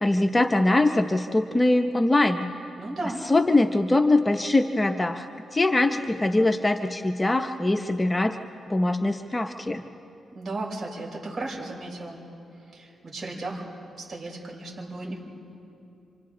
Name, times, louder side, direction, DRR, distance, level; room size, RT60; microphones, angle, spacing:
voice 1, 0.0-2.5 3.2-5.3 5.5-8.4 8.7-9.8, left 2 dB, 20° left, 6 dB, 0.8 m, -22 dB
voice 2, 2.8-3.2 10.3-12.2 12.7-13.7 14.0-15.2, right 2 dB, 40° right, -3 dB, 5.9 m, -35 dB
28.5 x 26.0 x 3.8 m, 2.7 s
cardioid pair, 80°, 0 cm